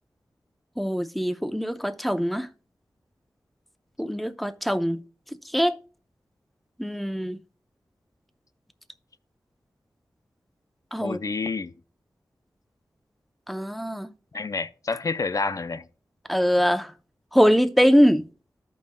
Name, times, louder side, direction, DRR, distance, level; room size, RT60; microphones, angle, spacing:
voice 1, 0.8-2.5 4.0-5.0 5.5-5.8 6.8-7.4 10.9-11.2 13.5-14.1 16.3-16.9 17.3-18.3, equal, ahead, 0.6 m, -22 dB
voice 2, 11.0-11.7 14.3-15.9, left 4 dB, 50° left, 0.4 m, -29 dB
14.5 x 5.3 x 2.2 m
wide cardioid pair, 60°, 7 cm